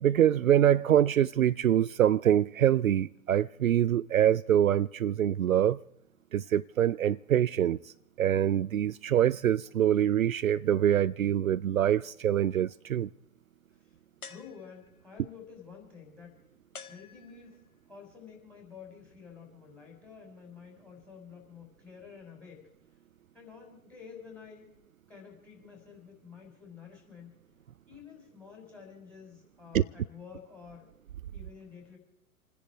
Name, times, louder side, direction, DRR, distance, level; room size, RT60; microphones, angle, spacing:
voice 1, 0.0-5.8 6.3-7.9 8.2-13.1 29.7-29.8, right 10 dB, 65° right, 0.5 m, -25 dB
sound 1, 14.2-15.1 16.7-17.7, left 5 dB, 80° left, 1.6 m, -49 dB
voice 2, 14.2-16.5 16.8-22.7 23.3-24.7 25.1-27.3 27.9-30.9 31.3-32.0, left 6 dB, 5° left, 5.1 m, -50 dB
29.0 x 10.5 x 4.6 m
figure-of-eight pair, 120°, 44 cm